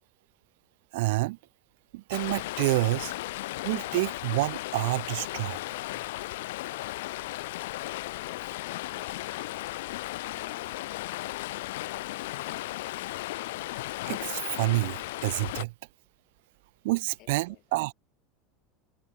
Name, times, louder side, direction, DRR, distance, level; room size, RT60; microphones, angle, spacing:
voice 1, 0.9-1.4 1.9-3.1 3.6-5.6 14.1-15.7 16.8-17.9, right 22 dB, 75° right, 0.5 m, -28 dB
Stream, 2.1-15.7, left 18 dB, 80° left, 0.7 m, -35 dB
voice 2, 8.2-9.9 10.3-12.1 17.2-17.6, left 19 dB, 55° left, 4.3 m, -55 dB
supercardioid pair, 110°, 0 cm